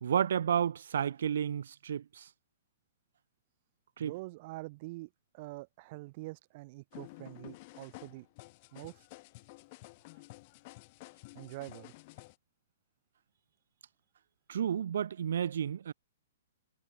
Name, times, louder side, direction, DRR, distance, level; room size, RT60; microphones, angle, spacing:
voice 1, 0.0-2.2 4.0-4.1 14.5-15.9, right 8 dB, 70° right, 0.8 m, -31 dB
voice 2, 4.0-8.3 8.7-9.0 11.3-11.9, right 22 dB, 40° right, 1.6 m, -45 dB
sound 1, 6.9-12.4, left 24 dB, 35° left, 6.1 m, -52 dB
hypercardioid pair, 155°, 0 cm